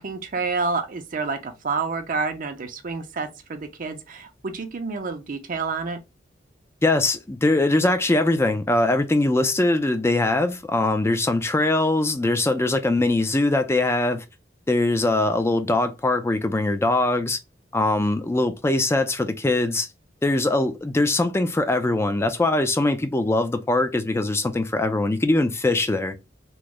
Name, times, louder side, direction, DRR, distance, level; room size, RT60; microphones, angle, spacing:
voice 1, 0.0-6.0, right 4 dB, 45° right, 0.5 m, -29 dB
voice 2, 6.8-14.2 14.7-17.4 17.7-19.9 20.2-26.2, left 2 dB, 15° left, 0.4 m, -22 dB
3.0 x 2.0 x 3.6 m
head